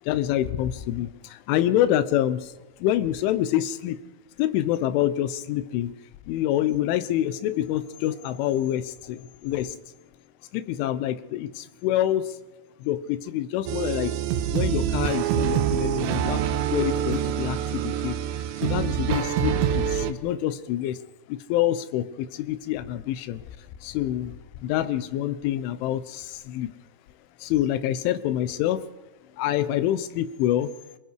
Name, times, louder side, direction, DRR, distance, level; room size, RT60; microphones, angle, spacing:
voice 1, 0.0-2.5 2.8-4.0 4.4-5.9 6.3-9.8 10.5-12.4 12.8-14.1 14.5-16.4 16.7-18.2 18.6-21.0 21.3-23.4 23.8-24.3 24.6-26.7 27.4-28.8 29.4-30.7, left 12 dB, 85° left, 13 dB, 3.4 m, -26 dB
sound 1, 13.7-20.1, right 10 dB, 80° right, 3.4 m, -26 dB
28.0 x 21.5 x 4.7 m, 1.1 s
omnidirectional pair, 5.5 m